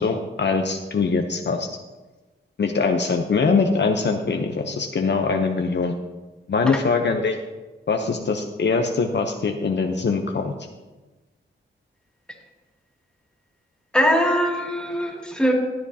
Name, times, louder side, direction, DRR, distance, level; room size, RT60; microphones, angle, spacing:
voice 1, 0.0-1.7 2.6-5.9 6.5-7.4 7.9-10.5, left 4 dB, 55° left, 4 dB, 0.8 m, -22 dB
voice 2, 13.9-15.5, equal, 5° left, -1 dB, 2.5 m, -21 dB
15.0 x 9.8 x 2.8 m, 1.2 s
cardioid pair, 80°, 21 cm